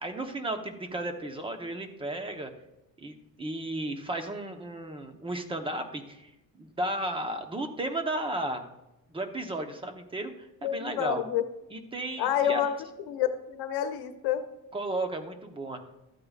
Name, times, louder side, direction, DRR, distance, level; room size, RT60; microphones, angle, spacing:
voice 1, 0.0-2.5 3.0-6.3 6.6-8.6 9.1-11.2 11.7-12.6 14.7-15.8, right 1 dB, 15° right, 6 dB, 0.9 m, -34 dB
voice 2, 10.6-11.4 12.2-12.7 13.1-14.4, left 10 dB, 80° left, 8 dB, 0.9 m, -28 dB
13.5 x 8.6 x 2.4 m, 0.92 s
cardioid pair, 155°, 36 cm